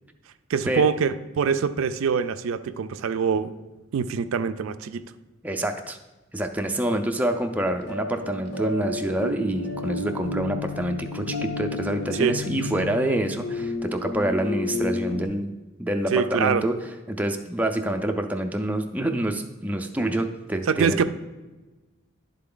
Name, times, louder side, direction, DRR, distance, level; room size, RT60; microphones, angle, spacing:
voice 1, 0.5-3.5 3.9-5.0 12.1-12.4 16.1-16.6 20.7-21.1, right 6 dB, 80° right, 12 dB, 0.4 m, -24 dB
voice 2, 5.4-6.0 6.3-15.5 15.8-16.8 17.1-21.0, right 1 dB, 10° right, 4 dB, 0.4 m, -27 dB
sound 1, 7.8-15.2, left 3 dB, 55° left, 0.7 m, -32 dB
11.0 x 3.8 x 3.8 m, 1.2 s
head